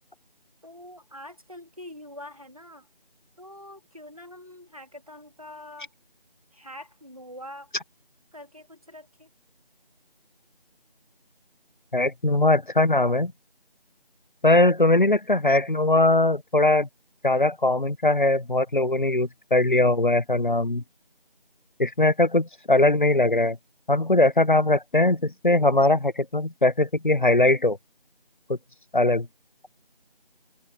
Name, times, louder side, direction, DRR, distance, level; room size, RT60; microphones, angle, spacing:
voice 1, 0.6-2.9 3.4-5.9 6.5-7.7 8.3-9.3, left 1 dB, 35° right, 2.0 m, -44 dB
voice 2, 11.9-13.3 14.4-16.9 17.2-20.8 21.8-23.6 23.9-27.8 28.5-28.6 28.9-29.3, left 2 dB, 55° left, 0.6 m, -21 dB
open air
figure-of-eight pair, 180°, 29 cm